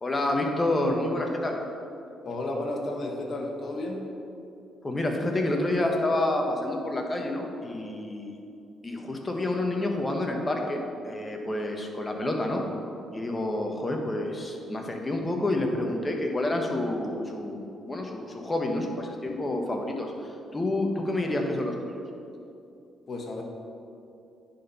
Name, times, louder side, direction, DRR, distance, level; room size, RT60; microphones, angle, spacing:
voice 1, 0.0-1.6 4.8-8.4 8.8-12.6 13.1-21.7, left 1 dB, 25° left, 2 dB, 1.2 m, -28 dB
voice 2, 2.2-4.0 23.1-23.4, left 2 dB, 50° left, 1 dB, 1.3 m, -32 dB
9.8 x 4.4 x 5.6 m, 2.7 s
cardioid pair, 90°, 0 cm